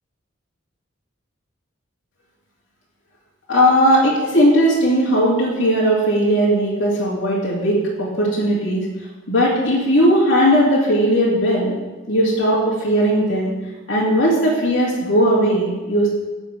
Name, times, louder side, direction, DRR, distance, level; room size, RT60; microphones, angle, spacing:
voice 1, 3.5-8.9 9.3-11.7 12.1-13.5 13.9-16.1, equal, 75° left, -6 dB, 2.4 m, -17 dB
11.5 x 4.2 x 7.9 m, 1.2 s
head